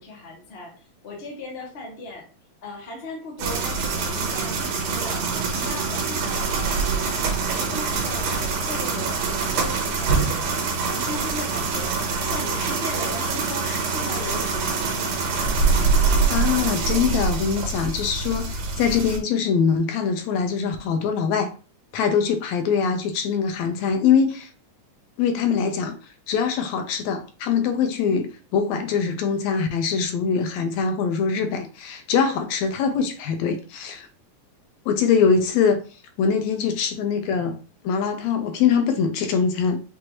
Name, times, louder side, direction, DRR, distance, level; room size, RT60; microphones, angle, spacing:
voice 1, 0.0-2.3 2.6-14.8, left 2 dB, 55° left, 0.6 m, -37 dB
sound 1, 3.4-19.2, right 4 dB, 90° right, 2.5 m, -24 dB
voice 2, 16.3-21.5 21.9-24.5 25.2-26.0 26.3-34.1 34.9-35.8 36.2-37.6 37.8-39.9, left 6 dB, 80° left, 1.8 m, -23 dB
6.1 x 2.6 x 3.0 m
omnidirectional pair, 3.4 m